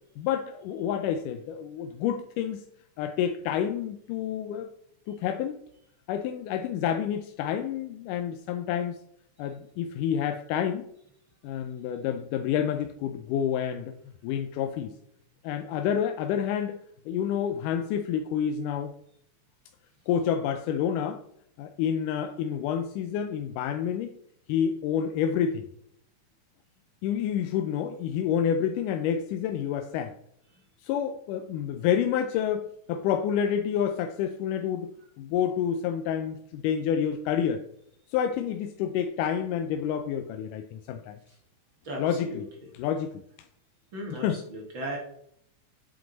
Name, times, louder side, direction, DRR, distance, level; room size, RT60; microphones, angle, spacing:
voice 1, 0.2-2.6 3.0-4.7 5.1-5.6 6.1-9.0 9.4-10.9 11.4-13.9 14.2-14.9 15.4-16.8 17.1-18.9 20.1-21.2 21.6-24.1 24.5-25.7 27.0-30.2 30.8-34.9 35.2-37.6 38.1-41.2 42.0-42.5 42.7-43.2 44.1-44.4, left 8 dB, 80° left, 7 dB, 2.1 m, -28 dB
voice 2, 43.9-45.0, right 1 dB, 45° right, 0 dB, 1.7 m, -36 dB
8.8 x 7.9 x 4.0 m, 0.69 s
omnidirectional pair, 3.7 m